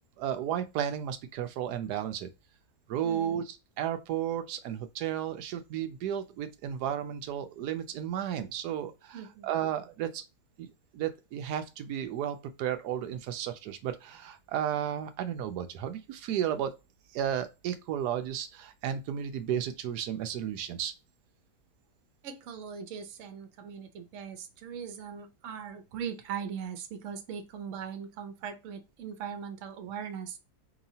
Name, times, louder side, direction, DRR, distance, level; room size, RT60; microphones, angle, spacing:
voice 1, 0.2-2.3 2.9-3.4 3.8-10.2 10.6-16.7 17.1-20.9, right 10 dB, 90° right, 1.1 m, -33 dB
voice 2, 3.0-3.4 9.1-9.5 22.2-30.4, right 7 dB, 60° right, 1.0 m, -40 dB
4.6 x 2.9 x 2.7 m
omnidirectional pair, 1.7 m